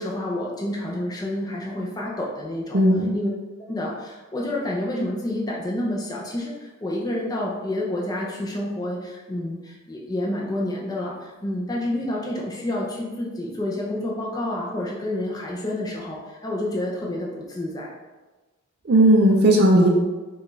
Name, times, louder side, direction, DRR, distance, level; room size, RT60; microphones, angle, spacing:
voice 1, 0.0-2.8 3.1-3.3 3.7-17.9, left 1 dB, 15° left, -3 dB, 0.5 m, -29 dB
voice 2, 2.7-3.2 18.9-19.9, right 1 dB, 45° right, -1 dB, 0.5 m, -16 dB
4.8 x 2.3 x 3.1 m, 1.2 s
head